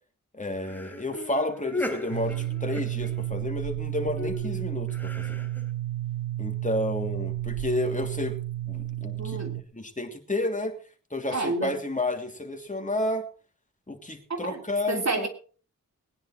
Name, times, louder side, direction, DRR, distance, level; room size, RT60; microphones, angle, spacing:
voice 1, 0.3-5.4 6.4-8.4 8.7-9.4 9.7-10.8 11.1-13.3 13.9-15.3, left 2 dB, 25° left, 4 dB, 3.1 m, -31 dB
sound 1, 0.6-3.6 4.2-5.7, left 2 dB, 5° left, 3.3 m, -37 dB
sound 2, 2.1-9.6, right 14 dB, 70° right, 1.6 m, -32 dB
voice 2, 9.2-9.6 11.3-11.8 14.3-14.6 14.9-15.3, right 3 dB, 55° right, 4 dB, 3.1 m, -29 dB
20.5 x 10.5 x 4.5 m, 0.39 s
wide cardioid pair, 65°, 32 cm